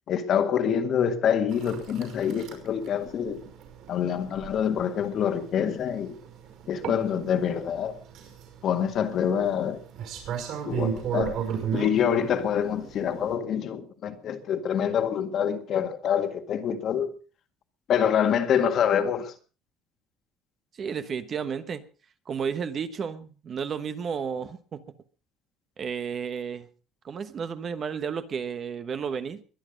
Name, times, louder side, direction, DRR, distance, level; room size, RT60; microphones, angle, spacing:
voice 1, 0.1-3.4 3.9-6.2 6.7-8.0 8.6-9.8 10.6-11.4 11.7-17.1 17.9-19.3, left 8 dB, 45° left, 1.9 m, -26 dB
sound 1, 1.5-13.3, right 8 dB, 55° right, 5.7 m, -35 dB
voice 2, 20.8-21.8 22.3-24.8 25.8-26.7 27.0-29.4, right 6 dB, 30° right, 1.1 m, -32 dB
22.5 x 9.9 x 5.2 m
cardioid pair, 160°, 0 cm